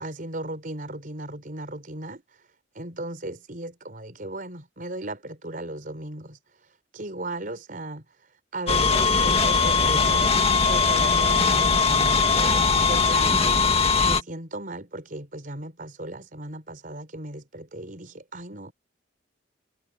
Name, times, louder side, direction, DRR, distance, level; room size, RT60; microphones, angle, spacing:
voice 1, 0.0-2.5 2.7-10.4 10.7-18.7, right 1 dB, 45° right, 4.8 m, -37 dB
sound 1, 8.7-14.2, left 4 dB, 30° left, 1.9 m, -20 dB
head